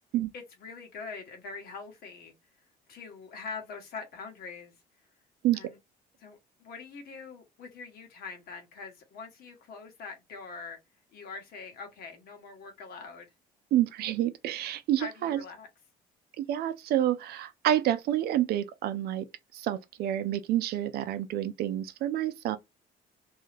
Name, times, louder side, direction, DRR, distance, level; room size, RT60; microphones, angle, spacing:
voice 1, 0.3-2.3 2.9-4.7 5.5-5.8 6.2-10.8 11.1-13.3 15.0-15.7, left 4 dB, 65° left, 1.2 m, -43 dB
voice 2, 13.7-15.4 16.4-19.3 19.5-22.6, right 12 dB, 70° right, 0.5 m, -28 dB
2.7 x 2.3 x 3.3 m
cardioid pair, 110°, 17 cm